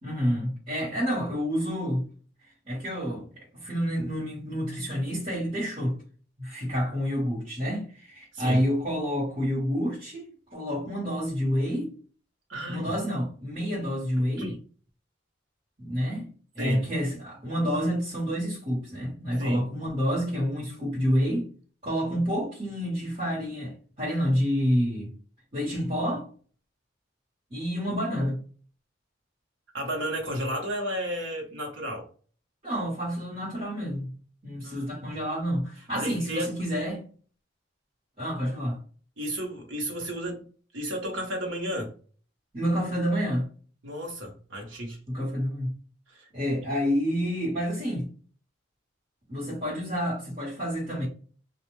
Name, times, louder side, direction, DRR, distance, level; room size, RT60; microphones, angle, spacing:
voice 1, 0.0-2.0 2.6-6.0 6.4-11.9 12.7-14.4 15.8-21.5 21.8-25.1 25.5-26.3 27.5-28.4 32.6-34.1 34.4-37.1 38.2-38.8 42.5-43.5 45.1-45.7 46.3-48.1 49.3-51.1, equal, 30° right, 1.2 m, -28 dB
voice 2, 12.5-12.9 14.4-14.6 16.6-16.8 19.4-19.6 29.7-32.1 34.6-34.9 35.9-36.5 39.2-40.5 40.7-41.9 43.8-45.0 46.1-46.3, equal, 80° right, 1.0 m, -32 dB
2.3 x 2.2 x 3.0 m
head